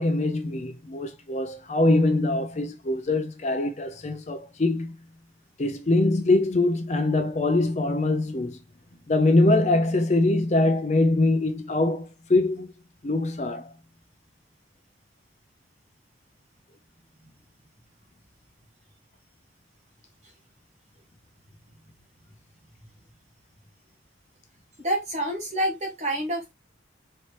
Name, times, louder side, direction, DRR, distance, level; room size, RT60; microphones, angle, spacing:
voice 1, 0.0-4.9 5.6-8.6 9.1-12.7 13.0-13.7, left 2 dB, 35° left, 0.5 m, -23 dB
voice 2, 24.8-26.5, right 1 dB, 35° right, 1.4 m, -28 dB
4.3 x 3.2 x 2.8 m
head